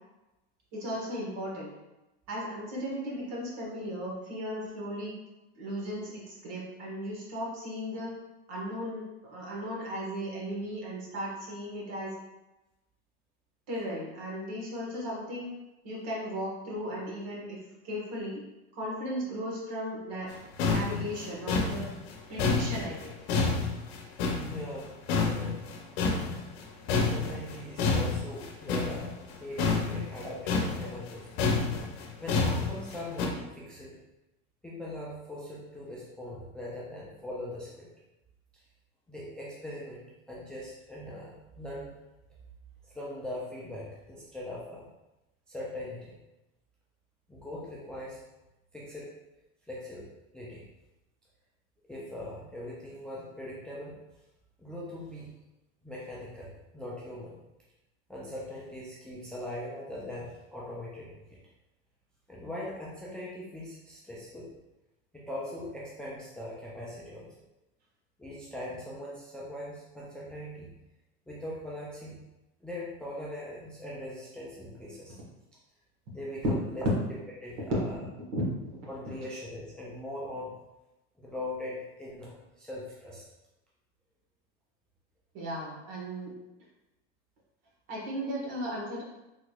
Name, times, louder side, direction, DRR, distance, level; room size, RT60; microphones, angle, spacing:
voice 1, 0.7-1.7 2.3-5.1 5.5-8.1 8.5-12.1 13.7-15.5 15.8-17.6 17.8-18.4 18.7-20.3 20.7-21.9 22.3-23.1 77.7-77.8 78.3-78.4 79.1-79.2 85.3-86.3 87.9-89.0, equal, 55° right, -4 dB, 1.5 m, -36 dB
sound 1, 20.3-20.4 20.6-24.8 25.1-26.6 26.9-33.3, left 4 dB, 80° left, 0.7 m, -28 dB
voice 2, 24.4-25.8 26.9-31.3 32.2-34.0 34.6-37.9 38.5-38.6 39.1-41.9 42.8-44.9 45.5-46.1 47.3-48.2 48.7-49.1 49.7-50.1 50.3-50.7 51.9-54.0 54.6-55.3 55.8-57.4 58.1-61.4 62.3-64.5 65.1-67.3 68.2-70.7 71.3-72.2 72.6-75.2 76.1-76.4 76.7-76.9 77.4-78.0 78.9-80.5 81.2-83.2, left 1 dB, 5° left, -5 dB, 0.4 m, -41 dB
3.6 x 3.0 x 2.4 m, 0.98 s
supercardioid pair, 130°, 31 cm